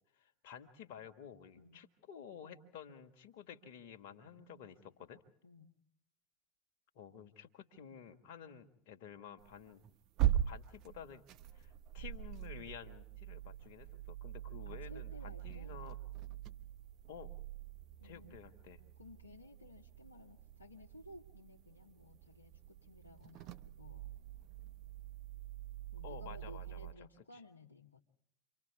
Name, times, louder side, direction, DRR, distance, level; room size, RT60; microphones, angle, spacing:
voice 1, 0.2-5.2 7.0-9.8 10.2-11.2 11.5-16.0 17.1-17.3 18.0-18.8 26.0-26.9, left 8 dB, 55° left, 7 dB, 1.9 m, -52 dB
voice 2, 5.4-5.7 14.6-15.8 18.0-18.5 19.0-24.1 25.9-28.0, left 2 dB, 85° left, -1 dB, 1.3 m, -57 dB
sound 1, 9.4-26.9, right 12 dB, 45° right, 1.1 m, -42 dB
29.5 x 25.5 x 3.6 m, 0.75 s
figure-of-eight pair, 75°, 0 cm